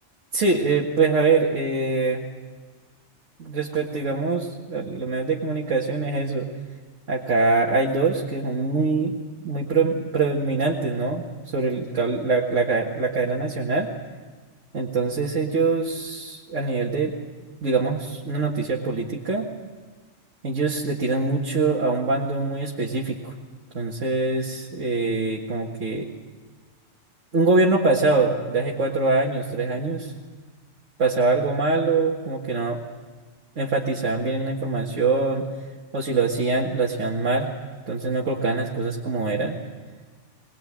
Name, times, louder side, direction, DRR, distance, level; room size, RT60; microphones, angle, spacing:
voice 1, 0.3-2.2 3.4-6.5 7.1-11.2 11.5-13.9 14.7-17.1 17.6-19.5 20.4-23.3 23.7-26.1 27.3-30.1 31.0-32.8 33.6-35.5 35.9-37.5 37.9-39.6, right 3 dB, 90° right, -2 dB, 2.2 m, -23 dB
23.5 x 19.5 x 8.8 m, 1.4 s
omnidirectional pair, 1.3 m